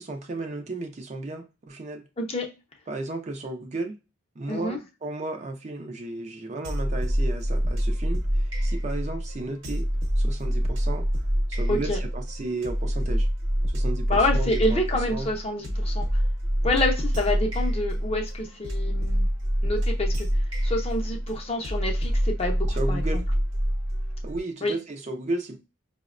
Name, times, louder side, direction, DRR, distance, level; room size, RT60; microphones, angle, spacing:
voice 1, 0.0-2.1 2.9-4.0 4.4-9.9 10.2-11.1 11.5-13.3 13.7-15.3 22.7-23.2 24.2-25.6, right 2 dB, 35° right, 0.4 m, -34 dB
voice 2, 2.2-2.5 4.5-4.8 11.7-12.0 14.1-16.1 16.6-19.3 19.6-20.3 20.6-23.2 24.6-24.7, left 1 dB, 30° left, 0.6 m, -27 dB
sound 1, 6.6-24.4, equal, 65° right, 0.9 m, -26 dB
4.9 x 2.0 x 2.4 m
head